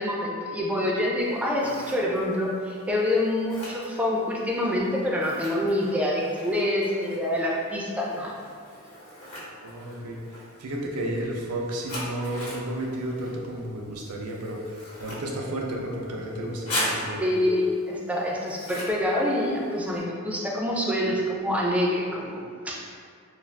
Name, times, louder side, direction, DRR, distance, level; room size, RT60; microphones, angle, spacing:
voice 1, 0.0-8.3 17.2-22.7, left 1 dB, 5° right, -3 dB, 0.3 m, -26 dB
Scissors, 1.2-20.0, left 1 dB, 85° left, 1.0 m, -40 dB
voice 2, 9.6-17.2, right 1 dB, 90° right, -1 dB, 0.5 m, -32 dB
2.5 x 2.3 x 3.2 m, 2.1 s
head